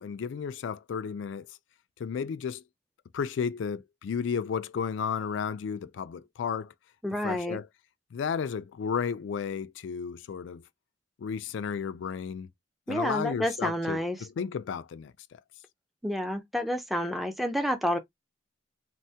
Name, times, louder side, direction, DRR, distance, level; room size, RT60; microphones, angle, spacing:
voice 1, 0.0-1.6 2.0-2.6 3.1-6.7 7.2-7.7 8.1-10.6 11.2-12.5 12.9-15.4, left 6 dB, 70° left, 0.3 m, -33 dB
voice 2, 7.0-7.6 12.9-14.2 16.0-18.0, equal, ahead, 0.4 m, -29 dB
3.3 x 2.1 x 2.7 m
head